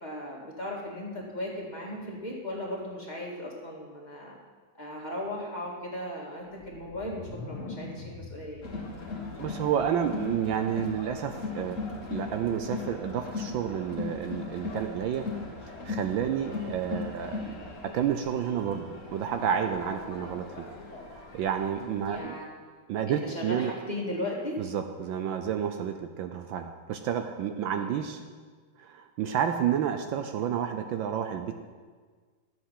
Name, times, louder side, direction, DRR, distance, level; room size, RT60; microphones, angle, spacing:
voice 1, 0.0-4.3 4.8-8.8 16.4-16.7 22.1-22.4 23.1-24.6 27.7-27.9, left 1 dB, 20° left, -4 dB, 1.9 m, -37 dB
sound 1, 6.5-10.3, left 2 dB, 85° left, 2.0 m, -44 dB
Crowd, 8.6-22.2, left 4 dB, 40° left, 1.6 m, -38 dB
voice 2, 9.4-11.8 12.1-15.3 15.7-17.5 17.8-20.6 21.1-22.3 22.9-23.7 24.6-28.2 28.8-31.5, right 8 dB, 75° right, 7 dB, 1.3 m, -30 dB
12.5 x 7.8 x 5.8 m, 1.5 s
omnidirectional pair, 2.3 m